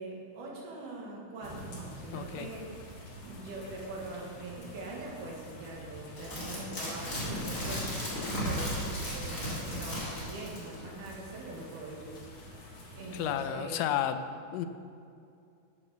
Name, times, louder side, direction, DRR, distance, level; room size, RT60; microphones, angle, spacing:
voice 1, 0.0-2.8 3.2-7.9 8.3-12.1 12.5-12.7 12.9-13.9, right 2 dB, 80° right, -2 dB, 3.2 m, -42 dB
sound 1, 1.4-13.3, equal, 45° left, 2.1 m, -48 dB
voice 2, 2.1-2.5 13.1-14.2 14.5-14.7, left 11 dB, 90° left, 10 dB, 2.2 m, -32 dB
sound 2, 6.2-10.7 11.1-11.2, equal, 25° left, 2.9 m, -35 dB
8.7 x 7.2 x 6.8 m, 2.5 s
omnidirectional pair, 3.7 m